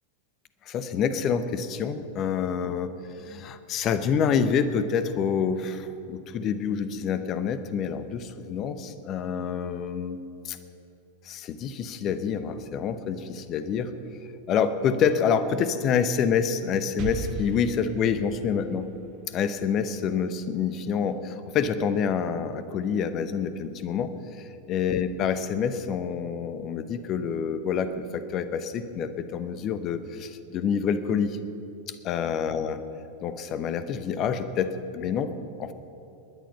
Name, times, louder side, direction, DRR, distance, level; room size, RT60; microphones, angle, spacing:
voice 1, 0.7-10.2 10.4-10.6 11.2-13.9 14.5-18.9 19.3-24.1 24.4-31.4 31.9-32.8 33.2-35.3 35.6-35.7, left 7 dB, 35° left, 11 dB, 0.9 m, -27 dB
Explosion, 17.0-20.8, right 5 dB, 40° right, 1.0 m, -38 dB
20.5 x 10.5 x 5.5 m, 2.8 s
figure-of-eight pair, 90°, 0 cm